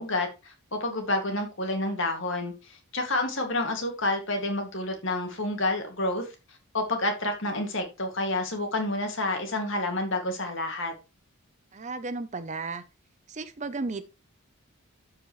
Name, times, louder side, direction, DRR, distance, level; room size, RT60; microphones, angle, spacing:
voice 1, 0.0-6.3 6.7-10.9, left 2 dB, 55° left, 2.2 m, -29 dB
voice 2, 11.7-12.8 13.3-14.1, right 3 dB, 30° right, 0.6 m, -34 dB
12.5 x 4.9 x 3.1 m
head